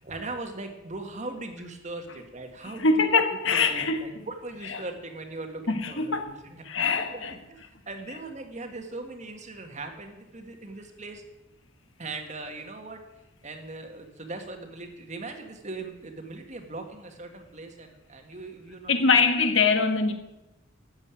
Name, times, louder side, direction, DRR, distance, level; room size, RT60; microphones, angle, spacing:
voice 1, 0.0-11.2 12.0-13.0 13.4-19.2, right 2 dB, 35° right, 1.8 m, -40 dB
voice 2, 2.8-4.1 4.7-4.8 5.7-6.3 6.6-7.3 18.9-20.1, left 4 dB, 65° left, 1.5 m, -23 dB
13.0 x 7.9 x 9.0 m
head